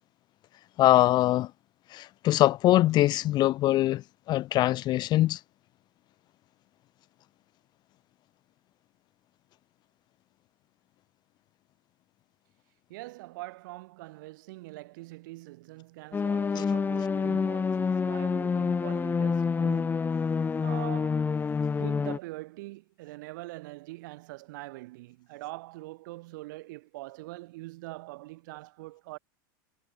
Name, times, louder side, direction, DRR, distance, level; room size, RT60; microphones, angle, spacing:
voice 1, 0.8-1.5 1.9-4.0 4.3-5.4, left 15 dB, 40° left, 1.6 m, -22 dB
voice 2, 12.9-20.2 20.6-21.3 21.7-29.2, right 20 dB, 65° right, 5.6 m, -43 dB
sound 1, 16.1-22.2, left 5 dB, 15° left, 1.9 m, -27 dB
hypercardioid pair, 115°, 11 cm